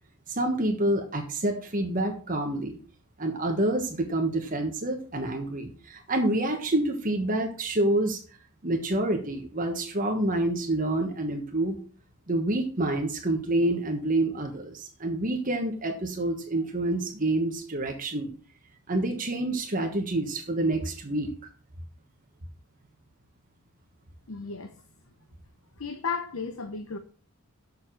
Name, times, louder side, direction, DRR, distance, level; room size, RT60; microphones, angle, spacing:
voice 1, 0.3-2.8 3.2-8.2 8.6-11.8 12.3-18.3 18.9-21.3, right 1 dB, 35° right, 1.4 m, -27 dB
voice 2, 24.3-24.8 25.8-27.0, left 5 dB, 65° left, 0.9 m, -34 dB
7.0 x 6.7 x 6.4 m
head